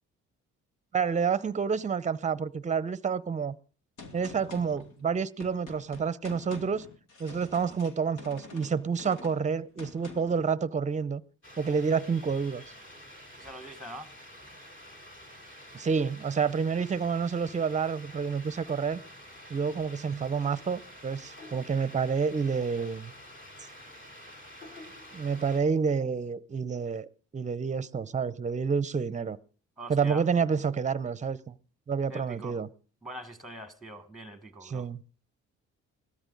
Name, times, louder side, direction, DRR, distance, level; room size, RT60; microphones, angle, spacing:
voice 1, 0.9-3.5 4.1-6.9 7.2-11.2 11.6-12.6 15.7-19.0 19.5-23.1 25.1-27.1 27.3-29.4 29.9-31.6 31.9-32.7 34.6-35.0, right 6 dB, 25° right, 0.6 m, -29 dB
Gunshot gunfire, 4.0-10.5, left 3 dB, 85° left, 2.1 m, -47 dB
sound 1, 11.4-25.6, equal, 40° left, 3.4 m, -49 dB
voice 2, 13.4-14.1 29.8-30.2 32.1-32.6 33.0-34.9, right 1 dB, ahead, 1.4 m, -43 dB
17.0 x 13.5 x 3.9 m
cardioid pair, 90°, 30 cm